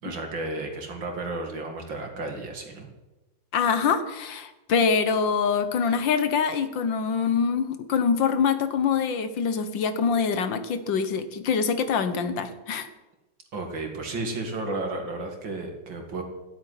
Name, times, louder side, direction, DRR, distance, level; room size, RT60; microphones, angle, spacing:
voice 1, 0.0-2.9 13.5-16.2, right 2 dB, 75° right, 3 dB, 3.1 m, -33 dB
voice 2, 3.5-12.9, left 6 dB, 75° left, 10 dB, 1.8 m, -24 dB
13.5 x 8.3 x 9.8 m, 1.1 s
omnidirectional pair, 2.1 m